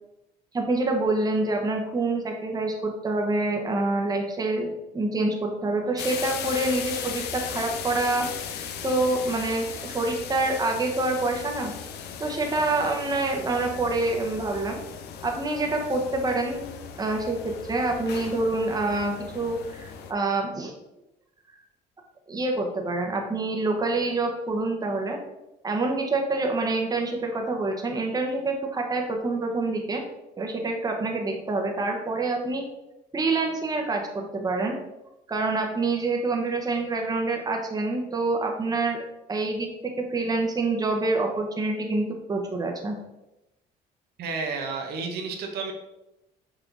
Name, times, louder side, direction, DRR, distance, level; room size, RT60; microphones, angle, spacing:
voice 1, 0.5-11.7 12.2-14.8 15.2-16.7 17.0-20.7 22.3-25.2 25.6-30.0 30.4-32.6 33.1-34.8 35.3-39.0 39.3-43.0, right 2 dB, 20° right, 1 dB, 1.1 m, -26 dB
sound 1, 6.0-20.1, left 7 dB, 75° left, 0.7 m, -37 dB
voice 2, 44.2-45.7, right 4 dB, 70° right, 2 dB, 1.1 m, -31 dB
6.2 x 4.4 x 3.9 m, 0.93 s
cardioid pair, 110°, 17 cm